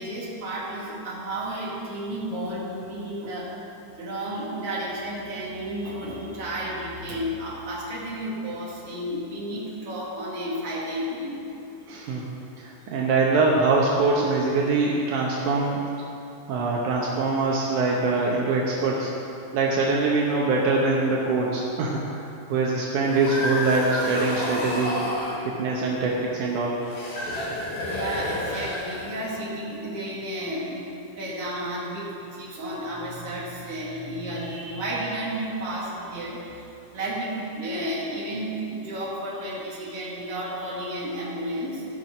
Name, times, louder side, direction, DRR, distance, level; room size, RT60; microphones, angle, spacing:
voice 1, 0.0-3.5 4.0-11.4 27.8-30.9 31.2-36.6 36.9-41.9, right 1 dB, 50° right, -6 dB, 3.1 m, -32 dB
voice 2, 11.9-12.2 12.6-15.8 16.5-19.1 19.5-22.0 22.5-25.0 25.6-26.8, right 3 dB, 80° right, -3 dB, 2.4 m, -23 dB
sound 1, 23.0-25.4 26.8-29.3, left 1 dB, 65° left, 3.3 m, -30 dB
16.5 x 6.0 x 5.4 m, 2.7 s
omnidirectional pair, 3.5 m